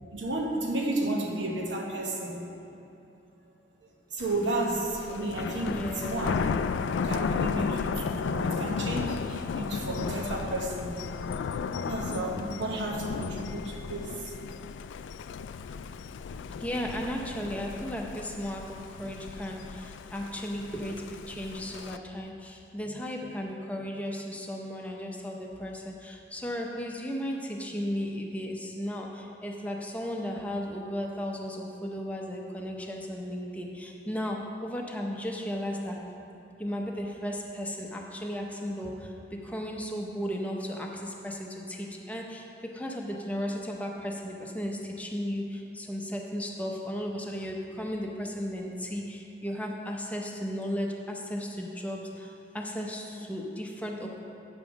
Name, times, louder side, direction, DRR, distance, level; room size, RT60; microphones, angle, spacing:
voice 1, 0.1-2.4 4.1-6.4 7.0-11.0 11.8-14.2, right 1 dB, 80° right, 0 dB, 1.1 m, -32 dB
Thunder, 4.2-22.0, left 5 dB, 80° left, 0.3 m, -34 dB
voice 2, 5.6-6.3 16.6-36.0 36.6-54.2, equal, 10° left, 0 dB, 0.6 m, -35 dB
8.8 x 5.5 x 6.1 m, 2.8 s
head